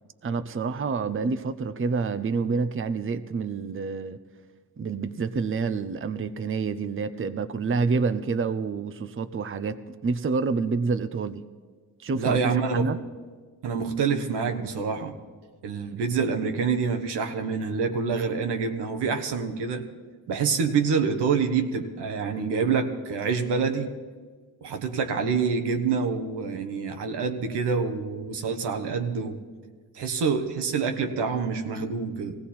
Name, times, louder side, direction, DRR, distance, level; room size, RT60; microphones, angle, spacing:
voice 1, 0.2-4.2 4.8-11.4 12.0-13.0, right 4 dB, 30° right, 11 dB, 0.7 m, -28 dB
voice 2, 12.1-12.9 13.6-15.2 15.6-19.8 20.3-23.9 24.6-29.4 29.9-32.4, right 5 dB, 80° right, 6 dB, 1.3 m, -26 dB
18.0 x 16.0 x 4.3 m, 1.5 s
supercardioid pair, 50°, 39 cm